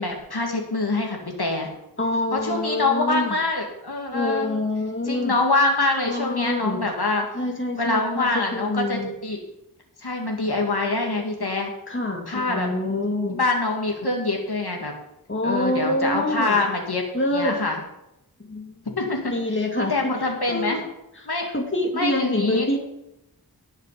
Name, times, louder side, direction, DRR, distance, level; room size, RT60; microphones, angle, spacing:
voice 1, 0.0-1.7 2.3-4.5 5.1-7.3 7.7-9.4 10.0-11.7 12.3-12.7 13.3-14.9 15.4-17.0 17.3-17.8 19.0-19.3 19.9-20.8 21.3-21.5 22.0-22.7, left 2 dB, 70° left, 1 dB, 2.7 m, -25 dB
voice 2, 2.0-3.4 4.1-5.3 6.1-6.8 7.3-9.1 11.9-13.4 15.3-16.6 17.1-17.6 18.5-18.8 19.3-20.8 21.2-22.8, left 1 dB, 30° left, 1 dB, 2.4 m, -26 dB
18.5 x 6.6 x 5.2 m, 0.87 s
wide cardioid pair, 45°, 40 cm